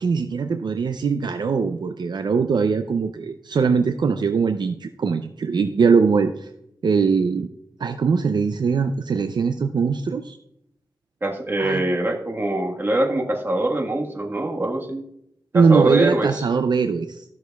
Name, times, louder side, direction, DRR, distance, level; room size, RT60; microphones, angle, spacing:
voice 1, 0.0-6.5 6.8-7.5 7.8-10.4 11.6-11.8 15.5-17.2, right 5 dB, 65° right, 7 dB, 0.5 m, -21 dB
voice 2, 11.2-15.0 15.5-16.3, right 2 dB, 30° right, 1 dB, 1.4 m, -23 dB
15.0 x 6.3 x 2.3 m, 0.75 s
wide cardioid pair, 75°, 8 cm